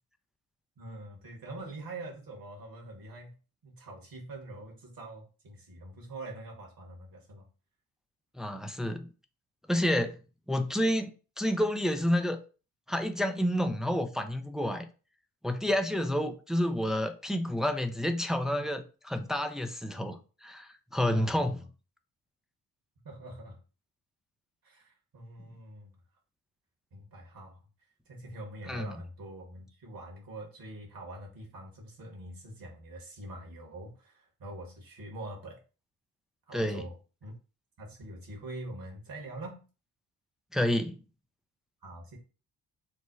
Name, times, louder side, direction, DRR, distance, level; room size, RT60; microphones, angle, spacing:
voice 1, 0.8-3.3 3.6-7.4 19.9-20.1 21.1-21.7 23.0-23.6 24.6-26.0 26.9-27.6 28.1-35.6 36.5-36.9 37.2-37.3 37.8-39.6 41.8-42.2, right 2 dB, 50° right, 1.5 m, -44 dB
voice 2, 8.4-9.1 9.7-10.2 10.5-12.4 12.9-14.9 15.4-21.6 28.7-29.0 36.5-36.9 40.5-41.0, left 1 dB, ahead, 0.4 m, -29 dB
3.1 x 2.1 x 4.0 m
hypercardioid pair, 45°, 43 cm